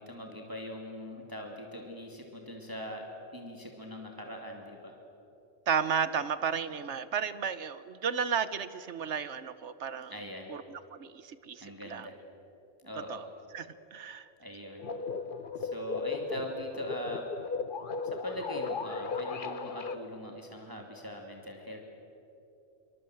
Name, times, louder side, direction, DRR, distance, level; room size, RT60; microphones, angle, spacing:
voice 1, 0.0-5.0 10.1-10.5 11.6-12.2 12.8-13.2 14.4-14.9 15.6-17.3 18.1-22.0, equal, 15° right, 1 dB, 2.6 m, -41 dB
voice 2, 5.7-10.1 10.5-12.1 13.1-13.3 13.5-14.3, right 7 dB, 65° right, 14 dB, 1.2 m, -33 dB
sound 1, 14.8-20.0, left 4 dB, 45° left, 1.1 m, -36 dB
26.5 x 24.0 x 7.8 m, 2.8 s
omnidirectional pair, 1.3 m